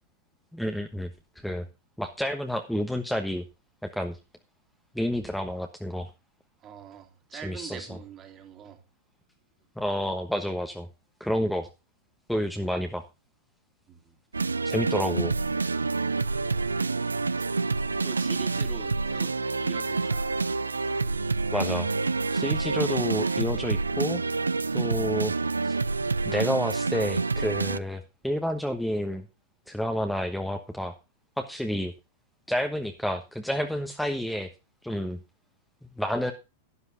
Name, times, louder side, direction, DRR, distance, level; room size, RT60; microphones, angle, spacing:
voice 1, 0.5-1.1 1.4-1.6 2.0-3.4 3.8-4.2 4.9-6.1 7.3-7.9 9.8-10.9 11.2-11.7 12.3-13.0 14.6-15.3 21.5-21.9 22.3-24.2 24.7-25.3 25.6-25.8 26.2-29.2 29.7-30.9 31.4-31.9 32.5-34.5 34.8-35.2 36.0-36.3, equal, ahead, 1.1 m, -29 dB
voice 2, 6.6-8.8 13.9-14.2 18.0-20.4, right 8 dB, 30° right, 2.3 m, -44 dB
sound 1, 14.3-27.8, right 3 dB, 75° right, 0.5 m, -27 dB
12.5 x 11.5 x 2.6 m
figure-of-eight pair, 95°, 0 cm